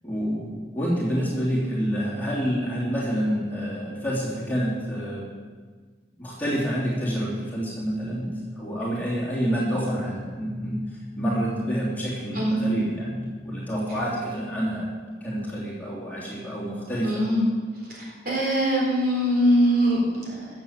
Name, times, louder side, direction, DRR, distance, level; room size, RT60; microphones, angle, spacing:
voice 1, 0.0-5.3 6.2-14.9 15.2-17.1, equal, 10° left, -7 dB, 3.0 m, -28 dB
voice 2, 17.0-17.4 18.0-20.5, equal, 50° right, -3 dB, 4.0 m, -22 dB
14.0 x 7.3 x 7.6 m, 1.5 s
head